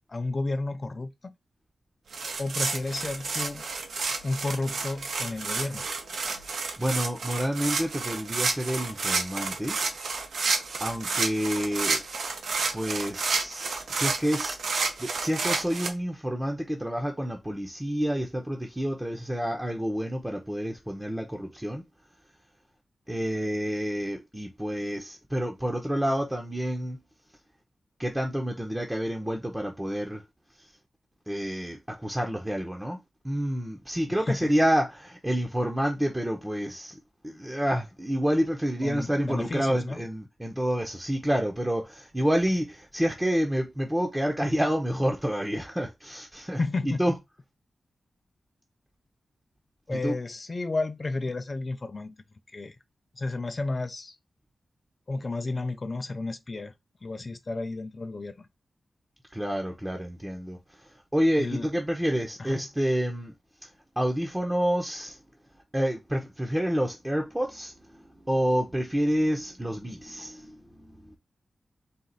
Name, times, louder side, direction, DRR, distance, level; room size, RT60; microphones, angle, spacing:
voice 1, 0.1-1.3 2.4-3.7 4.2-5.9 34.1-34.5 38.8-40.0 46.6-47.0 49.9-52.2 52.5-52.8 53.1-54.2 55.1-56.7 57.0-58.5 61.4-61.7 62.4-62.7, left 2 dB, 35° left, 0.6 m, -32 dB
sound 1, 2.1-15.9, right 4 dB, 80° right, 0.8 m, -30 dB
voice 2, 6.8-9.8 10.8-12.0 12.7-21.8 23.1-27.0 28.0-30.2 30.6-30.7 31.3-46.6 46.8-47.1 49.9-50.2 59.3-63.3 63.6-63.7 64.0-65.2 65.7-71.2, equal, 10° right, 0.7 m, -29 dB
4.3 x 2.4 x 3.9 m
wide cardioid pair, 115°, 0 cm